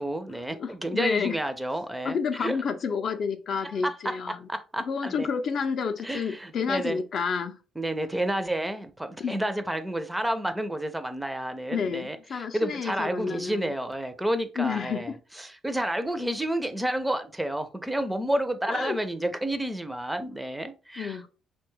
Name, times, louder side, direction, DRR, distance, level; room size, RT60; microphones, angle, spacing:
voice 1, 0.0-2.6 3.8-5.3 6.0-7.0 7.8-21.3, right 1 dB, 10° right, 0.4 m, -30 dB
voice 2, 0.6-1.4 2.0-4.5 4.8-7.6 9.2-9.4 11.7-13.7 14.6-15.2 18.7-19.0 21.0-21.3, left 6 dB, 60° left, 0.4 m, -30 dB
2.9 x 2.2 x 3.1 m
cardioid pair, 80°, 0 cm